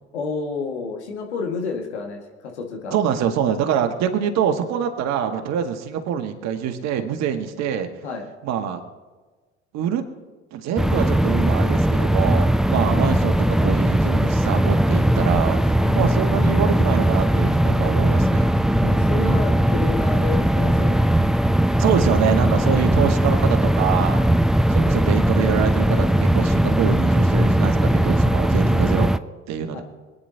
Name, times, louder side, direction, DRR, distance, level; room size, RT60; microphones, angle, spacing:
voice 1, 0.1-2.9 8.0-8.3 15.8-16.0 18.8-21.1 22.7-22.9 29.7-29.8, left 4 dB, 75° left, 2 dB, 2.0 m, -30 dB
voice 2, 2.9-7.9 8.4-8.8 9.7-10.0 10.5-15.6 15.9-18.6 21.8-24.2 24.7-29.1 29.5-29.8, right 8 dB, 50° right, 5 dB, 1.8 m, -25 dB
sound 1, 10.8-29.2, right 1 dB, ahead, 0.4 m, -19 dB
25.5 x 9.8 x 2.9 m, 1.3 s
figure-of-eight pair, 55°, 34 cm